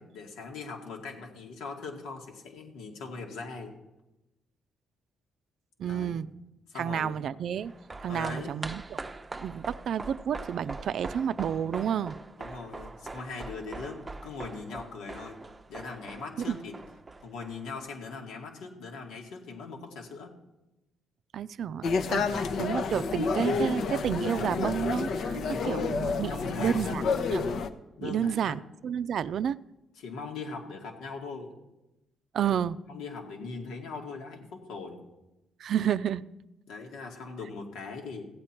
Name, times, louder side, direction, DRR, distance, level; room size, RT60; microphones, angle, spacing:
voice 1, 0.0-3.8 5.8-6.2 6.7-7.2 8.1-8.5 12.4-15.4 15.7-16.8 17.2-20.3 22.2-22.5 25.4-25.9 26.3-27.0 28.0-28.7 30.0-31.5 32.4-32.6 32.9-35.0 36.7-38.3, left 4 dB, 90° left, 1 dB, 2.1 m, -40 dB
voice 2, 5.8-6.3 6.8-7.7 8.0-9.0 9.4-12.2 16.5-16.6 21.3-26.3 26.6-27.0 27.3-27.4 28.0-29.6 32.3-32.8 35.6-36.2, right 8 dB, 65° right, 16 dB, 0.4 m, -30 dB
sound 1, 7.6-18.1 18.4-18.5, right 3 dB, 20° right, 0.6 m, -42 dB
sound 2, 21.8-27.7, left 4 dB, 65° left, 0.8 m, -29 dB
15.0 x 8.6 x 4.5 m, 0.95 s
cardioid pair, 90°, 0 cm